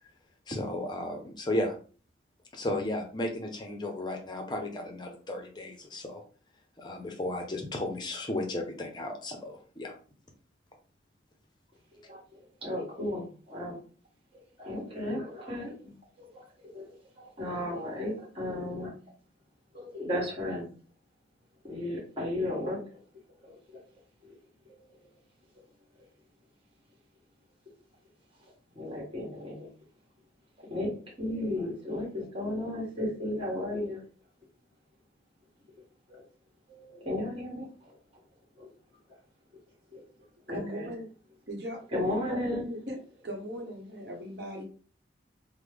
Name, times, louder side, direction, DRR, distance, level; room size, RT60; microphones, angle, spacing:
voice 1, 0.5-1.8 2.5-6.2 6.8-9.9, left 1 dB, 25° left, 3 dB, 0.5 m, -34 dB
voice 2, 12.0-13.8 14.6-15.7 16.2-16.9 17.2-18.9 19.7-20.7 21.6-23.0 23.4-23.8 24.2-24.3 24.7-25.0 28.7-29.7 30.7-34.0 36.1-36.2 36.7-37.9 38.6-38.7 39.9-40.0 40.5-40.9 41.9-42.6, left 1 dB, 30° right, -4 dB, 1.4 m, -34 dB
voice 3, 40.5-41.1 41.5-41.8 42.3-43.0 43.2-44.6, equal, 55° right, 1 dB, 0.9 m, -38 dB
3.1 x 2.1 x 3.4 m, 0.39 s
head